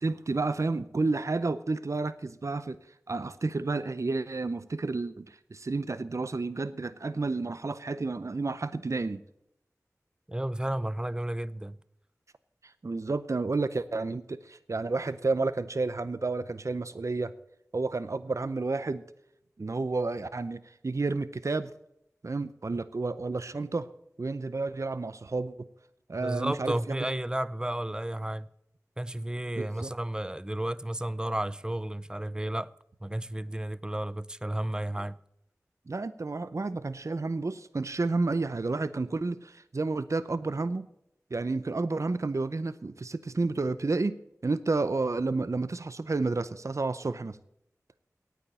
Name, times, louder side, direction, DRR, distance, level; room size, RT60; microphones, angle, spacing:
voice 1, 0.0-2.8 3.1-9.2 12.8-17.3 17.7-19.0 19.6-21.7 22.2-23.9 24.2-25.7 26.1-27.0 29.6-29.9 35.9-40.9 41.3-44.2 44.4-47.4, right 3 dB, 55° right, 0.6 m, -31 dB
voice 2, 10.3-11.8 26.2-28.5 29.0-32.7 33.0-35.2, right 1 dB, 15° right, 0.5 m, -32 dB
9.2 x 9.1 x 8.6 m
wide cardioid pair, 45°, 6 cm